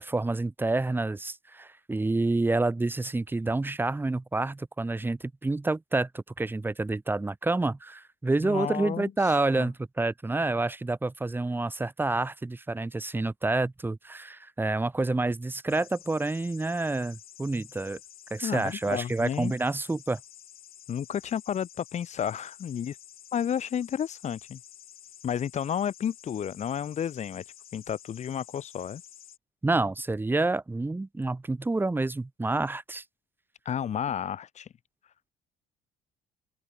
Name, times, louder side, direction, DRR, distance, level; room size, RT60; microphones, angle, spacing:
voice 1, 0.0-18.0 18.3-20.2 29.6-33.0, right 2 dB, 10° right, 1.4 m, -28 dB
voice 2, 8.4-9.7 18.4-19.5 20.9-23.0 23.3-24.6 25.2-27.4 27.7-29.0 33.6-34.7, left 8 dB, 45° left, 1.2 m, -32 dB
sound 1, 15.7-29.4, left 11 dB, 60° left, 6.3 m, -51 dB
open air
cardioid pair, 110°, 17 cm